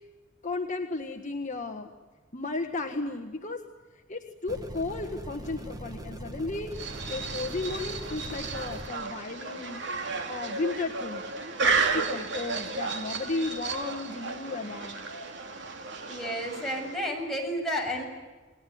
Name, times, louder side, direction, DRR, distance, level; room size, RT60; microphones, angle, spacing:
voice 1, 0.4-1.9 2.3-3.6 4.1-6.7 7.1-11.2 11.6-15.0, left 3 dB, 40° left, 3 dB, 1.6 m, -34 dB
sound 1, 4.5-8.9, right 1 dB, 20° right, 2.1 m, -41 dB
sound 2, 6.7-17.1, right 4 dB, 70° right, 2.7 m, -33 dB
voice 2, 16.1-18.0, equal, ahead, -2 dB, 7.3 m, -31 dB
28.5 x 20.5 x 9.5 m, 1.3 s
head